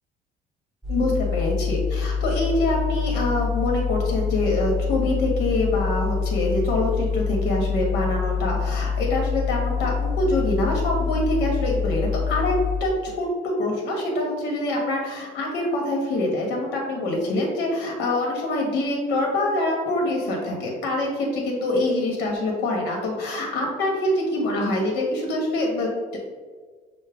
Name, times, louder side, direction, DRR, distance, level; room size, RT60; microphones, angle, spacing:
sound 1, 0.8-12.8, left 6 dB, ahead, 0.8 m, -26 dB
voice 1, 0.9-12.5 12.8-26.2, left 1 dB, 85° left, 0 dB, 1.2 m, -25 dB
6.2 x 2.1 x 3.5 m, 1.5 s
cardioid pair, 110°, 17 cm